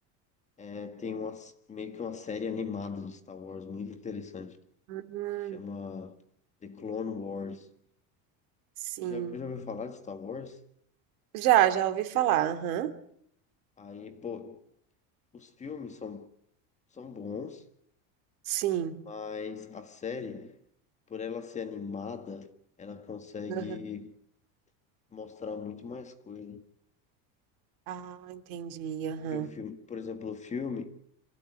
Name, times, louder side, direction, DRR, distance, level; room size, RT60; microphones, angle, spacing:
voice 1, 0.6-4.6 5.5-6.1 6.6-7.7 9.0-10.6 13.8-14.6 15.3-16.3 16.9-17.6 19.0-20.6 21.1-22.5 22.8-24.1 25.1-26.6 29.2-30.9, left 5 dB, 15° left, 1.6 m, -38 dB
voice 2, 4.9-5.6 9.0-9.4 11.3-12.9 18.5-19.0 23.5-23.8 27.9-29.5, right 12 dB, 75° right, 2.6 m, -28 dB
27.5 x 15.0 x 9.6 m
cardioid pair, 170°, 43 cm